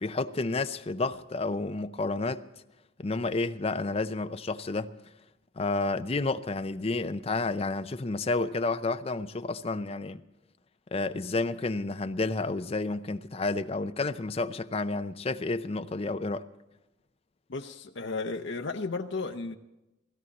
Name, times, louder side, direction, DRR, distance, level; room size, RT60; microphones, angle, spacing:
voice 1, 0.0-2.4 3.0-4.9 5.6-10.2 10.9-16.4, left 3 dB, 30° left, 0.5 m, -30 dB
voice 2, 17.5-19.5, left 3 dB, 70° left, 0.7 m, -34 dB
17.0 x 16.5 x 4.1 m
head